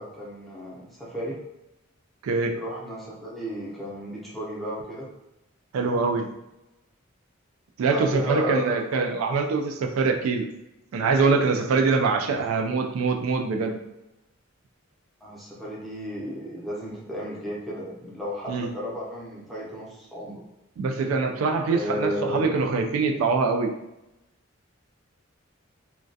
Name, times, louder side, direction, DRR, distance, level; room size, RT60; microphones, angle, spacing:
voice 1, 0.0-1.4 2.5-5.1 5.8-6.0 7.8-8.8 12.3-12.4 15.2-20.4 21.7-22.5, equal, ahead, -6 dB, 0.5 m, -33 dB
voice 2, 2.2-2.5 5.7-6.3 7.8-10.4 10.9-13.8 18.5-18.7 20.8-23.7, right 4 dB, 90° right, 3 dB, 0.3 m, -24 dB
2.3 x 2.2 x 2.6 m, 0.92 s
head